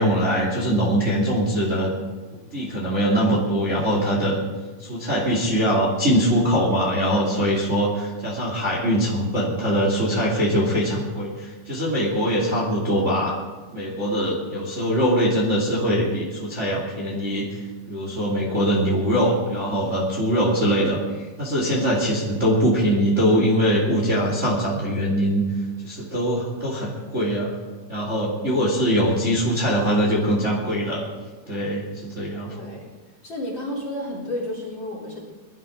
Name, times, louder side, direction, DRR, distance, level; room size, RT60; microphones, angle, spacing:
voice 1, 0.0-1.9 2.3-4.4 4.8-13.3 13.7-17.6 17.9-25.4 25.8-27.6 27.9-31.0 31.5-31.8 32.1-32.5, equal, 20° right, -4 dB, 2.7 m, -22 dB
voice 2, 32.5-32.9 33.2-35.2, left 1 dB, 30° left, -4 dB, 4.2 m, -32 dB
22.0 x 13.0 x 3.9 m, 1.3 s
omnidirectional pair, 4.7 m